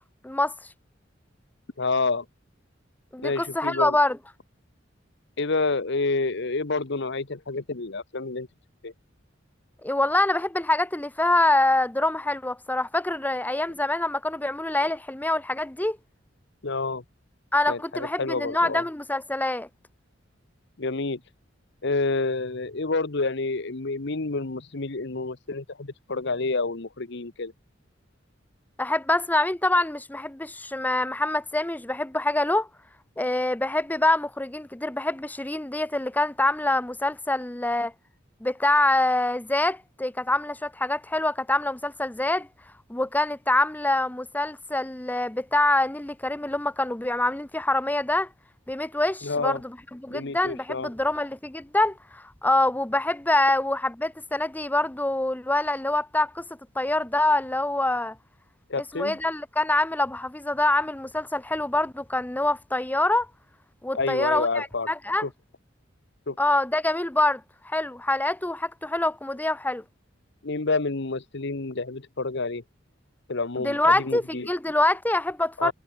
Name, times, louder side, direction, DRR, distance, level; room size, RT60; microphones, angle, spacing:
voice 1, 0.2-0.5 3.1-4.2 9.8-16.0 17.5-19.7 28.8-32.7 33.2-37.9 38.4-42.5 42.9-48.3 48.7-56.4 56.8-58.2 58.8-63.3 63.8-65.2 66.4-69.8 73.6-75.7, left 2 dB, 10° left, 0.7 m, -25 dB
voice 2, 1.8-2.2 3.2-4.0 5.4-8.5 8.8-8.9 16.6-17.0 17.7-18.8 20.8-21.2 21.8-27.5 49.2-49.6 50.1-50.9 58.7-59.2 63.9-64.9 65.2-65.3 66.3-66.4 70.4-72.6 73.3-74.5 75.6-75.7, left 3 dB, 65° left, 1.2 m, -28 dB
head